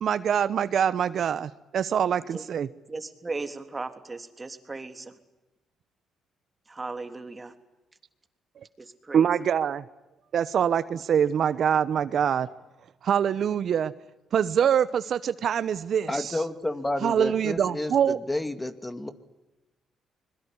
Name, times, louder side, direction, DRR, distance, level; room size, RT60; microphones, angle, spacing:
voice 1, 0.0-2.7 9.1-9.8 10.3-12.5 13.0-13.9 14.3-16.4 17.0-18.2, right 8 dB, 60° right, 14 dB, 0.9 m, -24 dB
voice 2, 2.9-5.0 6.8-7.5 9.1-9.2, right 3 dB, 25° right, 8 dB, 3.3 m, -36 dB
voice 3, 16.1-19.1, left 1 dB, 15° left, 10 dB, 2.4 m, -31 dB
25.5 x 22.0 x 9.8 m, 1.0 s
cardioid pair, 90°, 0 cm